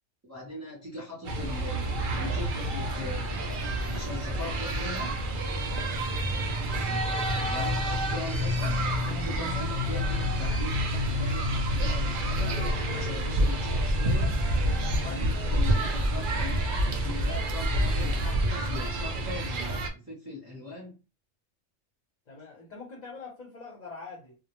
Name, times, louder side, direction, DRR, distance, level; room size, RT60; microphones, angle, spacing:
voice 1, 0.2-3.6 3.9-5.1 7.5-8.9 9.2-14.4 15.0-16.6 17.0-21.0, left 2 dB, 15° right, 0.7 m, -40 dB
sound 1, 1.2-19.9, equal, 60° right, 0.6 m, -28 dB
voice 2, 5.7-6.1 15.0-15.8 22.3-24.4, left 4 dB, 45° left, 0.7 m, -45 dB
2.2 x 2.1 x 2.9 m
omnidirectional pair, 1.2 m